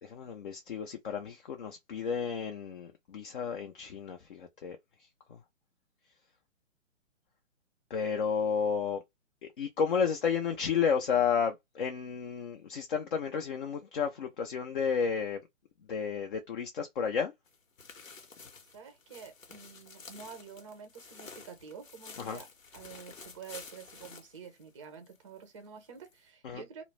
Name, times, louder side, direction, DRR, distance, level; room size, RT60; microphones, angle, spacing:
voice 1, 0.0-4.8 5.3-5.4 7.9-9.0 9.4-15.4 15.9-17.3 22.2-22.4 26.4-26.6, left 6 dB, 45° left, 0.5 m, -32 dB
sound 1, 17.5-25.2 25.5-25.6 26.1-26.2, left 4 dB, 80° left, 0.9 m, -51 dB
voice 2, 18.7-22.5 22.7-26.8, right 6 dB, 25° right, 0.5 m, -48 dB
2.3 x 2.0 x 3.1 m
figure-of-eight pair, 140°, 39 cm